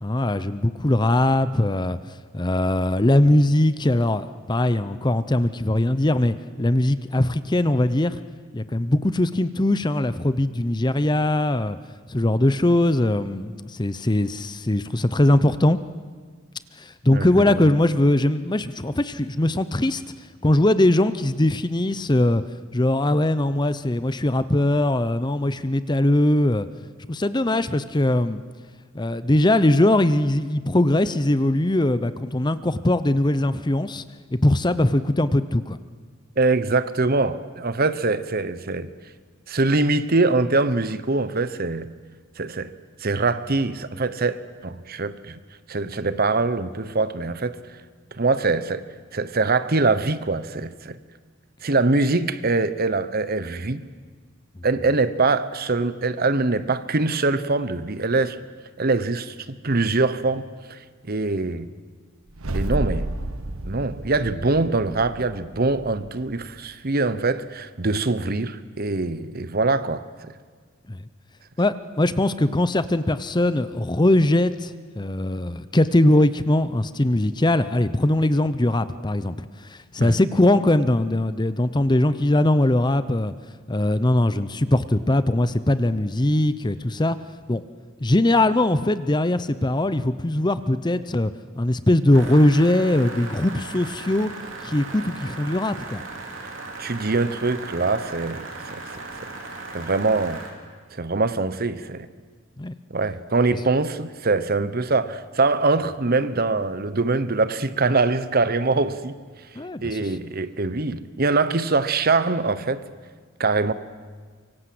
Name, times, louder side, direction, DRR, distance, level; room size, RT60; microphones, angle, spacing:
voice 1, 0.0-2.0 2.3-8.2 8.5-11.8 12.1-15.8 16.8-20.0 20.4-22.4 22.7-26.7 27.1-28.4 28.9-34.0 34.3-35.8 70.9-71.0 71.6-83.3 83.7-87.2 87.5-87.6 88.0-91.3 91.5-94.3 94.6-96.0 102.6-102.7 109.5-110.0, left 1 dB, 20° left, 0.7 m, -21 dB
voice 2, 17.1-17.7 36.4-38.9 39.5-41.9 42.4-42.7 43.0-45.4 45.7-47.6 48.1-48.9 49.1-51.0 51.6-53.8 54.6-58.4 58.8-60.8 61.1-61.7 62.5-63.1 63.6-70.3 80.0-80.2 96.8-98.8 99.7-100.4 100.9-102.1 102.9-109.2 109.8-112.8 113.4-113.7, right 3 dB, 45° right, 1.0 m, -23 dB
sound 1, 62.3-66.6, right 1 dB, 90° right, 1.3 m, -31 dB
sound 2, 92.1-100.5, right 3 dB, 60° right, 3.9 m, -37 dB
24.5 x 24.0 x 7.8 m
head